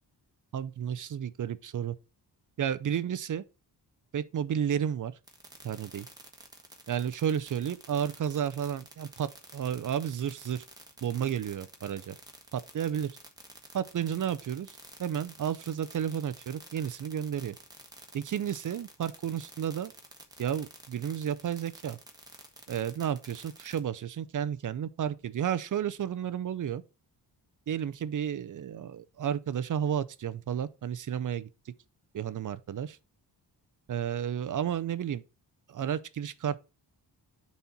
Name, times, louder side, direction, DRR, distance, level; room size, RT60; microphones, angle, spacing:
voice 1, 0.5-1.9 2.6-3.4 4.1-5.1 5.6-6.1 6.9-10.6 11.0-12.2 12.5-13.1 13.7-17.6 18.1-19.9 20.4-22.0 22.7-26.8 27.7-31.5 32.1-33.0 33.9-35.2 35.7-36.6, right 9 dB, 50° right, 0.6 m, -32 dB
sound 1, 5.3-23.8, right 2 dB, 10° right, 1.6 m, -50 dB
9.5 x 4.3 x 4.2 m
wide cardioid pair, 145°, 41 cm